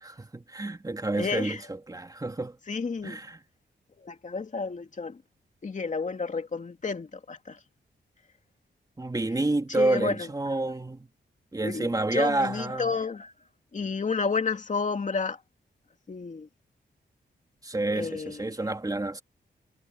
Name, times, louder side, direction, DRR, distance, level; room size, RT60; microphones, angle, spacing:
voice 1, 0.0-2.6 3.0-3.4 9.0-11.1 11.5-12.9 17.6-19.2, right 2 dB, 20° right, 3.0 m, -29 dB
voice 2, 1.2-1.6 2.7-3.2 4.0-5.2 5.6-7.6 9.7-10.3 11.6-13.3 13.7-15.4 16.1-16.5 18.0-18.5, left 4 dB, 40° left, 2.5 m, -31 dB
wide cardioid pair, 110°, 19 cm